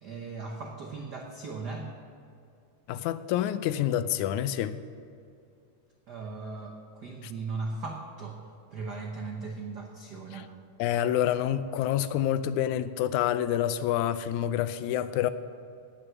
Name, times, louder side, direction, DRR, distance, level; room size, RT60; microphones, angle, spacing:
voice 1, 0.0-1.9 6.1-8.4 8.7-10.5, right 3 dB, 80° right, 1 dB, 0.9 m, -38 dB
voice 2, 2.9-4.8 7.2-7.3 10.3-10.5 10.8-15.3, left 11 dB, 85° left, 13 dB, 2.0 m, -28 dB
18.5 x 6.4 x 6.0 m, 2.4 s
omnidirectional pair, 3.4 m